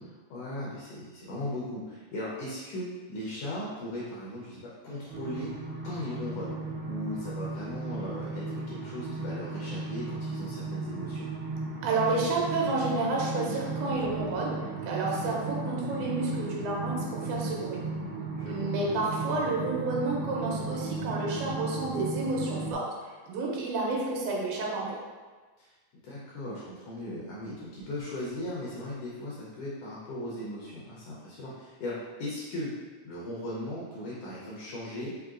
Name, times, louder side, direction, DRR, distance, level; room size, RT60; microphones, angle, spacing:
voice 1, 0.0-5.5 5.8-6.5 6.8-11.3 18.3-18.7 25.6-25.7 26.0-32.7 33.0-35.1, left 1 dB, 70° left, -6 dB, 1.6 m, -38 dB
sound 1, 5.1-22.7, right 3 dB, 45° right, 1.6 m, -35 dB
voice 2, 11.8-14.6 14.9-17.8 18.4-22.8 23.3-24.9, right 3 dB, 85° right, -3 dB, 2.2 m, -30 dB
4.9 x 3.0 x 2.4 m, 1.4 s
omnidirectional pair, 3.4 m